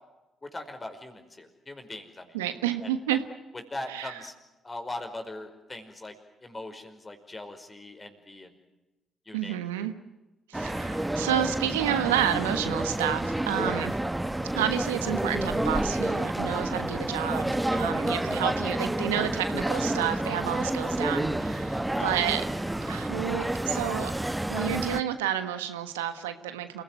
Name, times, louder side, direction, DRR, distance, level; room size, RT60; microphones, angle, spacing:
voice 1, 0.4-2.4 2.8-2.9 3.7-4.3 4.6-6.1 6.4-8.6 9.3-9.6 21.9-22.1, left 2 dB, 30° left, 6 dB, 5.2 m, -40 dB
voice 2, 2.3-3.2 3.9-4.2 9.3-9.9 10.5-14.0 14.5-22.4 22.8-24.1 24.5-26.8, right 11 dB, 85° right, 9 dB, 1.3 m, -30 dB
sound 1, 10.5-25.0, right 1 dB, 10° right, 1.3 m, -29 dB
28.5 x 17.5 x 9.3 m, 1.1 s
hypercardioid pair, 45°, 0 cm